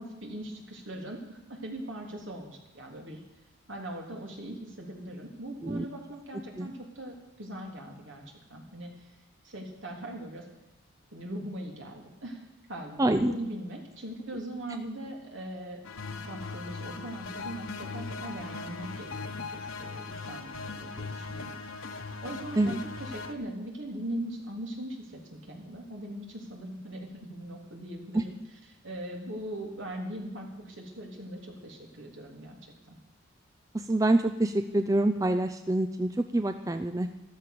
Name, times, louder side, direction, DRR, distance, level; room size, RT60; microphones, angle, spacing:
voice 1, 0.0-3.2 3.7-8.2 8.5-9.1 9.4-10.4 11.1-12.4 12.7-15.8 16.1-21.5 22.2-28.3 28.8-33.0, right 1 dB, 70° right, 1 dB, 3.5 m, -40 dB
voice 2, 13.0-13.4 22.6-22.8 28.1-28.2 33.7-37.1, right 1 dB, 15° right, 8 dB, 0.5 m, -26 dB
sound 1, 15.8-23.3, left 4 dB, 90° left, 1.3 m, -39 dB
13.5 x 13.0 x 6.8 m, 0.97 s
head